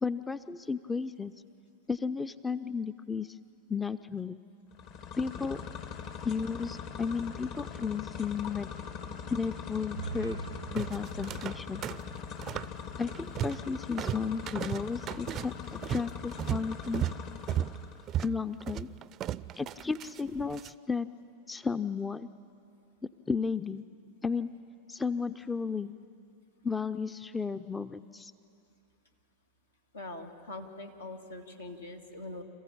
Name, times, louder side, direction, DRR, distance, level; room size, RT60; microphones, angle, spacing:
voice 1, 0.0-1.3 1.9-3.4 3.7-4.4 5.2-5.6 6.2-8.7 9.3-10.4 10.7-11.8 13.0-17.0 18.2-18.9 19.6-21.1 21.5-22.3 23.3-23.8 24.2-24.5 24.9-25.9 26.6-28.3, left 5 dB, 15° left, 13 dB, 0.5 m, -33 dB
sound 1, 4.7-18.1, left 6 dB, 50° left, 1.8 m, -42 dB
sound 2, 9.8-13.8, right 6 dB, 85° right, 0.6 m, -45 dB
sound 3, 10.8-11.6 11.8-12.7 13.0-13.7 14.0-20.7, right 11 dB, 35° right, 0.4 m, -35 dB
voice 2, 29.9-32.4, left 2 dB, 85° left, 3 dB, 1.8 m, -43 dB
27.5 x 15.0 x 8.6 m, 2.7 s
figure-of-eight pair, 90°, 0 cm